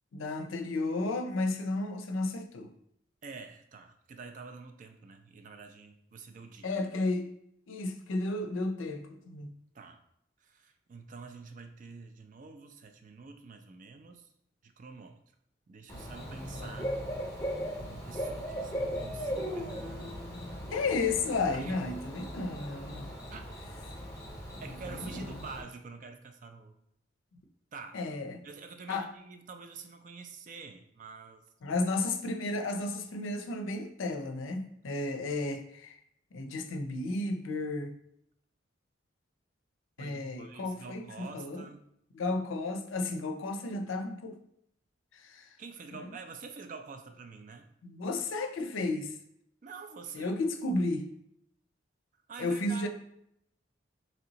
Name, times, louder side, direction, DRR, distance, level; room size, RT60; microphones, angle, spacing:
voice 1, 0.1-2.7 6.6-7.3 7.7-9.5 20.7-23.1 24.0-24.1 24.8-25.3 27.9-28.4 28.9-29.1 31.6-36.0 36.3-37.9 40.0-41.7 42.1-44.4 45.1-45.5 45.9-46.1 47.8-49.1 50.1-51.1 52.4-52.9, left 2 dB, 85° left, 6 dB, 0.5 m, -33 dB
voice 2, 3.2-6.7 9.7-10.0 10.4-14.3 14.6-15.2 15.7-17.0 17.3-17.4 17.8-20.5 21.5-21.8 23.3-23.4 24.6-26.8 27.7-28.0 28.4-31.4 40.0-41.9 45.6-47.7 49.6-50.3 52.3-52.9, right 4 dB, 40° right, 6 dB, 0.3 m, -47 dB
Bird / Cricket, 15.9-25.6, equal, 15° left, 0.8 m, -38 dB
3.3 x 2.7 x 3.9 m, 0.74 s
head